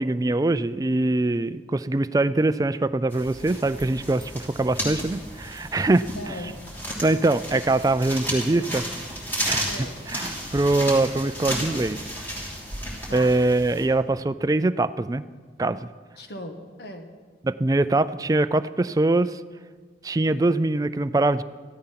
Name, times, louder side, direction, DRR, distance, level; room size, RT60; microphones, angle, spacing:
voice 1, 0.0-6.1 7.0-8.8 9.5-9.7 10.1-12.0 13.1-15.2 15.6-15.9 17.4-19.4 20.0-21.4, right 2 dB, 20° right, 13 dB, 0.3 m, -23 dB
sound 1, 3.1-13.9, equal, 10° left, 2.9 m, -33 dB
voice 2, 6.1-6.5 8.3-8.8 9.6-10.0 13.1-13.4 16.2-17.1, left 1 dB, 65° left, 5 dB, 1.5 m, -38 dB
14.5 x 12.5 x 5.8 m, 1.5 s
head